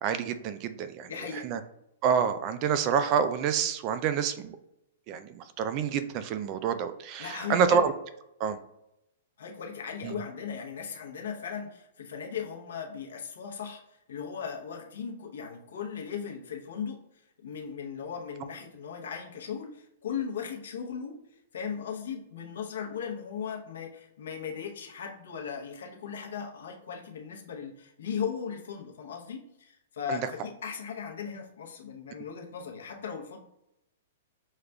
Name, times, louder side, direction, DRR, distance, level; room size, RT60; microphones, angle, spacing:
voice 1, 0.0-1.1 1.4-1.6 2.0-4.6 5.1-7.9 8.4-8.6 10.0-10.2 30.1-30.2, right 7 dB, 35° right, 11 dB, 0.3 m, -27 dB
voice 2, 1.1-1.4 7.2-7.8 9.4-17.0 17.4-21.2 21.5-33.4, left 7 dB, 80° left, 2 dB, 0.8 m, -37 dB
6.4 x 2.4 x 2.3 m, 0.85 s
hypercardioid pair, 145°, 0 cm